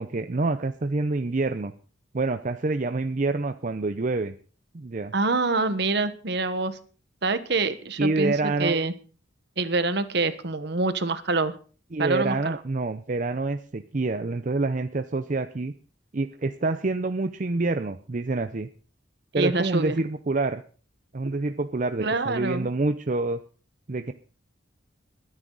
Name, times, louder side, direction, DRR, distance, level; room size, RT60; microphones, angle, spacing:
voice 1, 0.0-1.7 2.1-4.3 4.7-5.1 8.0-8.8 11.9-15.7 16.1-18.7 19.3-20.6 21.1-23.4 23.9-24.1, right 3 dB, 45° right, 9 dB, 0.6 m, -27 dB
voice 2, 5.1-6.8 7.2-8.9 9.6-11.5 12.0-12.6 19.3-20.0 22.0-22.7, right 3 dB, 60° right, 11 dB, 1.3 m, -26 dB
22.0 x 9.8 x 4.0 m, 0.39 s
head